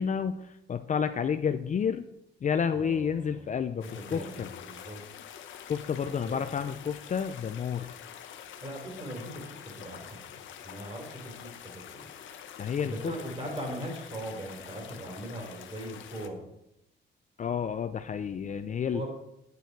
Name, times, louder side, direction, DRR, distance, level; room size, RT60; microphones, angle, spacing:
voice 1, 0.0-2.0 2.4-4.5 5.7-7.9 12.6-13.1 17.4-19.0, left 7 dB, 40° left, 10 dB, 0.5 m, -30 dB
voice 2, 2.7-3.5 3.8-5.0 6.0-6.4 8.6-12.1 12.8-16.5 18.9-19.1, right 1 dB, 30° right, 2 dB, 3.4 m, -40 dB
sound 1, 3.8-16.3, left 9 dB, 75° left, 0.9 m, -46 dB
9.6 x 6.9 x 4.6 m, 0.83 s
cardioid pair, 90°, 20 cm